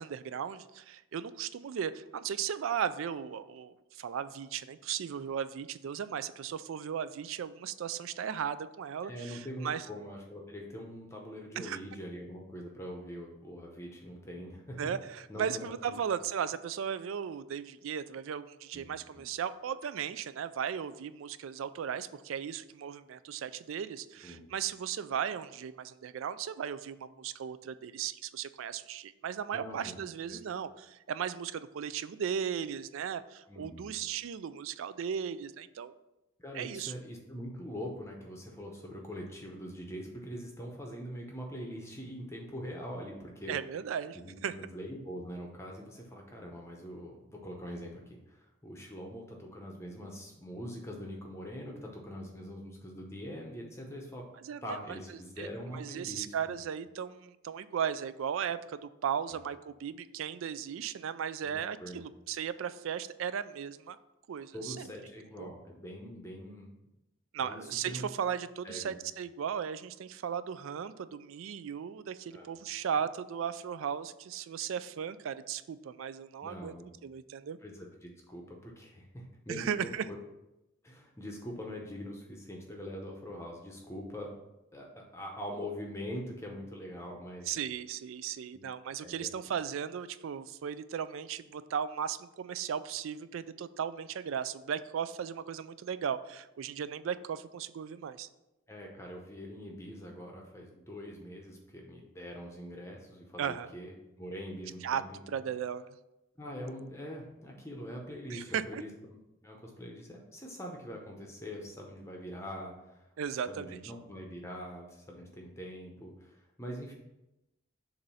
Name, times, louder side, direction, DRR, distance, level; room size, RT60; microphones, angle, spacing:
voice 1, 0.0-9.9 11.6-11.8 14.8-35.9 36.5-36.9 43.5-44.5 54.4-55.0 55.4-55.5 55.7-64.0 64.3-64.9 65.4-65.5 67.3-76.7 77.0-77.6 79.5-80.1 87.5-98.3 103.4-103.7 104.8-106.0 108.3-108.8 113.2-113.8, right 8 dB, 80° right, 14 dB, 0.3 m, -36 dB
voice 2, 9.0-14.9 15.3-15.6 15.9-16.0 18.7-19.2 24.2-24.4 29.5-30.0 30.3-30.4 33.5-33.9 36.4-43.6 44.1-54.3 54.6-56.6 59.3-59.4 61.4-62.1 64.5-66.7 67.4-68.1 68.6-69.0 72.3-72.7 76.4-76.9 77.6-80.2 80.8-84.3 84.7-87.5 88.5-88.6 89.0-89.3 96.7-96.8 98.7-105.5 106.4-108.9 109.4-113.1 113.5-116.9, equal, 15° left, 0 dB, 0.7 m, -43 dB
7.0 x 2.6 x 5.5 m, 0.94 s
head